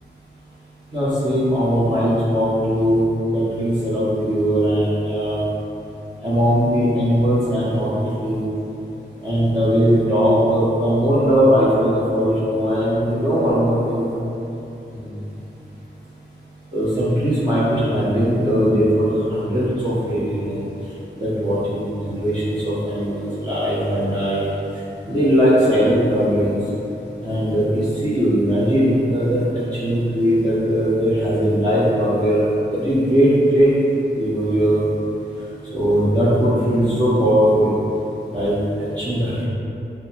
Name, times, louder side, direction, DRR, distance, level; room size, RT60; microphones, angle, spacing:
voice 1, 0.9-3.0 3.3-5.4 6.2-8.4 9.2-14.1 14.9-15.2 16.7-20.6 21.2-24.5 25.0-26.6 27.2-32.4 32.7-33.7 34.2-34.8 35.7-37.7 38.3-39.4, equal, 20° right, -11 dB, 1.0 m, -19 dB
6.2 x 2.2 x 2.8 m, 3.0 s
cardioid pair, 50°, 20 cm